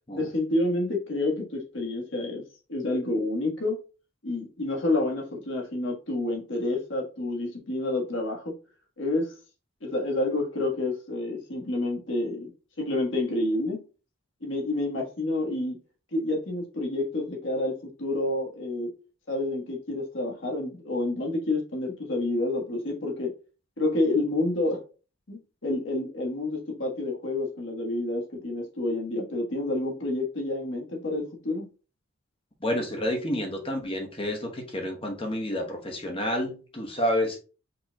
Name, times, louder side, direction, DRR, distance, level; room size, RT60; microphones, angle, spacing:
voice 1, 0.1-2.4 2.7-3.8 4.2-8.5 9.0-9.3 9.8-12.5 12.8-13.8 14.4-15.8 16.1-18.9 19.3-23.3 23.8-24.8 25.3-31.7, left 2 dB, 60° left, 0 dB, 1.5 m, -29 dB
voice 2, 32.6-37.4, left 1 dB, 25° left, 2 dB, 1.0 m, -29 dB
5.3 x 4.3 x 2.3 m, 0.35 s
head